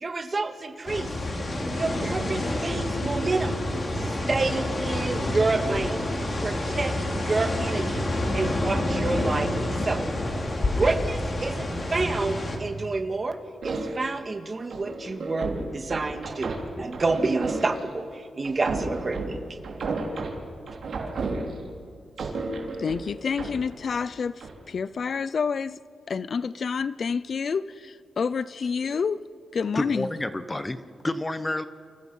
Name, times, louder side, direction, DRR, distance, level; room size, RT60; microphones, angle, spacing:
voice 1, 0.0-1.1 1.8-3.6 4.0-6.1 6.4-8.1 8.3-10.2 10.7-13.4 13.6-19.4, right 3 dB, 30° right, 7 dB, 1.9 m, -29 dB
sound 1, 0.9-12.6, left 1 dB, 30° left, 3.6 m, -28 dB
sound 2, 13.6-14.2 14.7-18.0 18.4-21.8 22.2-24.0 24.4-24.6, right 3 dB, 60° right, 3.7 m, -33 dB
voice 2, 22.8-25.8 26.1-29.2 29.5-30.1, left 5 dB, 50° left, 17 dB, 0.5 m, -28 dB
voice 3, 29.7-31.6, left 1 dB, 15° left, 11 dB, 0.9 m, -29 dB
29.0 x 25.0 x 5.6 m, 2.4 s
wide cardioid pair, 130°, 0 cm